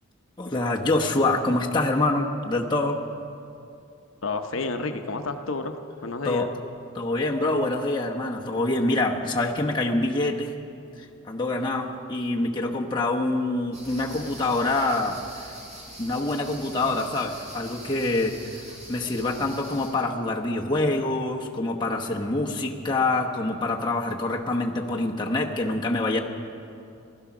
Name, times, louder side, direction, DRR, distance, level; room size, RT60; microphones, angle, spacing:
voice 1, 0.4-3.0 6.2-6.5 6.9-10.6 11.2-15.5 16.0-18.5 18.9-26.2, left 2 dB, 20° left, 0 dB, 0.9 m, -25 dB
voice 2, 4.2-6.5, left 3 dB, 75° left, 6 dB, 0.8 m, -30 dB
sound 1, 13.7-19.9, equal, 35° right, 3.8 m, -44 dB
15.5 x 12.5 x 6.0 m, 2.6 s
head